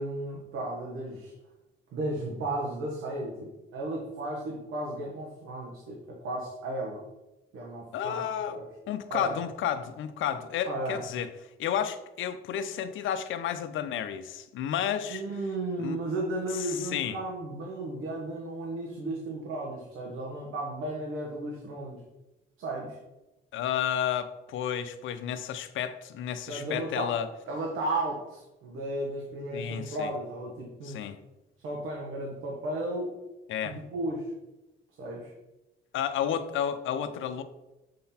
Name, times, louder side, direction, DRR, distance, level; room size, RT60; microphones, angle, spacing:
voice 1, 0.0-1.3 1.9-7.0 7.5-8.2 8.5-8.7 9.1-9.4 10.6-11.0 15.1-22.0 22.6-23.0 26.5-27.2 27.4-31.0 31.6-33.2 33.6-34.3 35.0-35.3, right 1 dB, 85° right, -2 dB, 1.3 m, -34 dB
voice 2, 7.9-8.6 8.9-11.3 11.6-15.2 15.8-16.0 16.7-17.2 23.5-27.3 29.5-30.1 30.8-31.2 33.5-33.8 35.9-37.4, left 9 dB, 80° left, 10 dB, 0.6 m, -31 dB
7.5 x 3.9 x 4.3 m, 1.0 s
cardioid pair, 90°, 20 cm